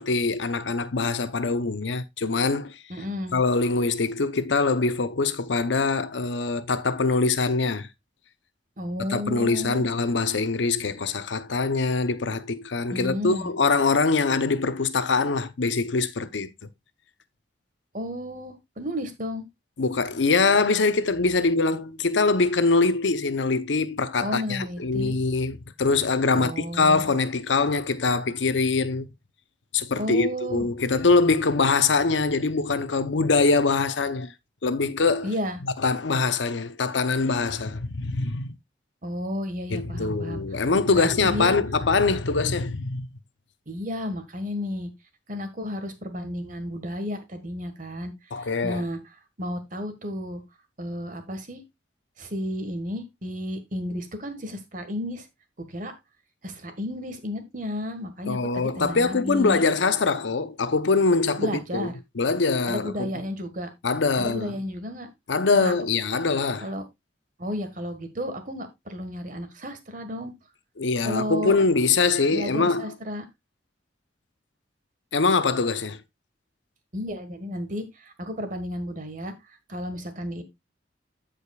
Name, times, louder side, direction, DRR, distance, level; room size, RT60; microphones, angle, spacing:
voice 1, 0.0-2.8 3.3-7.9 9.1-16.7 19.8-29.1 29.7-34.3 34.6-35.3 35.6-38.5 39.7-43.1 48.3-48.9 58.3-61.9 62.2-63.1 63.8-64.6 65.3-66.7 70.8-72.9 75.1-76.0, left 4 dB, 85° left, 0.7 m, -23 dB
voice 2, 2.9-3.4 8.8-9.9 12.9-13.5 17.9-19.4 24.2-25.2 26.3-27.1 30.0-30.7 35.2-35.6 39.0-40.4 40.9-41.5 43.7-44.9 45.3-49.0 49.4-50.4 50.8-51.6 52.2-55.3 55.7-55.9 56.4-59.6 61.4-61.9 62.7-63.7 64.2-65.1 65.5-65.7 66.6-66.8 67.4-70.3 71.0-71.5 72.3-73.2 76.9-79.3 79.7-80.4, left 1 dB, 45° right, 1.5 m, -32 dB
15.0 x 5.0 x 2.3 m
head